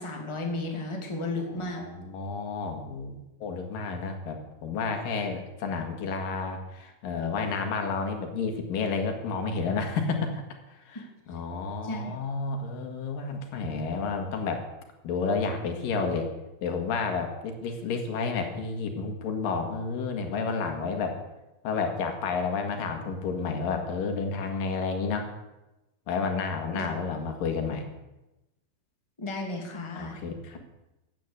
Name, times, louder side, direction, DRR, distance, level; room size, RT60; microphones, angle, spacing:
voice 1, 0.0-1.8 11.8-12.1 26.7-26.9 29.2-30.1, left 2 dB, 10° left, 1 dB, 2.3 m, -33 dB
voice 2, 1.4-10.4 10.7-14.7 15.0-16.3 16.6-21.2 21.6-25.3 26.1-27.9 29.9-30.6, left 4 dB, 80° left, 4 dB, 3.5 m, -31 dB
16.5 x 9.5 x 8.1 m, 1.0 s
omnidirectional pair, 3.9 m